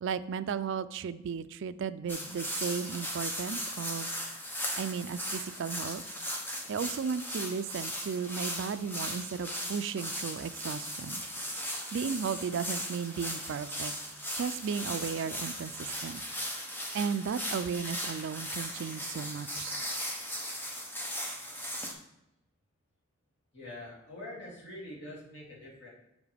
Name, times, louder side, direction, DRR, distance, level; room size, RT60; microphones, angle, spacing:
voice 1, 0.0-4.1 4.8-6.0 6.7-11.2 11.9-13.9 14.4-16.2 16.9-19.8, right 6 dB, 65° right, 13 dB, 0.3 m, -35 dB
sound 1, 2.1-21.9, equal, 10° left, 0.9 m, -37 dB
voice 2, 23.5-25.9, left 1 dB, 60° left, -5 dB, 2.5 m, -44 dB
7.1 x 6.5 x 3.4 m, 0.88 s
head